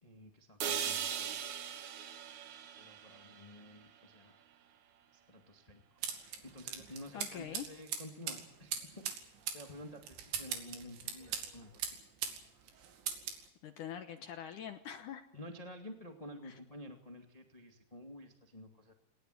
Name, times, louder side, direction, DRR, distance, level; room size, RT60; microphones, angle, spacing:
voice 1, 0.0-1.4 2.8-4.4 5.1-5.8 6.4-8.7 9.5-11.9 15.3-18.9, left 1 dB, 40° left, 3 dB, 0.5 m, -51 dB
sound 1, 0.6-4.6, right 8 dB, 65° right, 1.8 m, -40 dB
sound 2, 6.0-12.4 12.7-13.4, right 8 dB, 85° right, 4.7 m, -40 dB
voice 2, 7.1-7.7 13.6-15.2 16.4-16.6, left 9 dB, 75° left, 7 dB, 1.8 m, -44 dB
19.5 x 19.5 x 9.4 m, 0.77 s
omnidirectional pair, 5.2 m